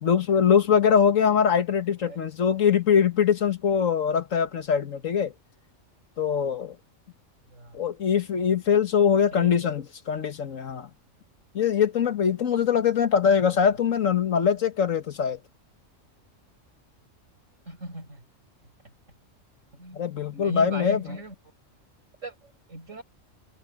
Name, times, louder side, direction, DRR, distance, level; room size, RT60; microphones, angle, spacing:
voice 1, 0.0-5.3 6.2-6.8 7.7-10.9 11.5-15.4 19.9-21.0, left 7 dB, 80° left, 1.7 m, -22 dB
voice 2, 7.5-7.8 9.0-9.7 17.7-18.2 19.7-20.0 20.3-21.3 22.2-23.0, right 1 dB, 70° right, 6.1 m, -38 dB
omnidirectional pair, 1.3 m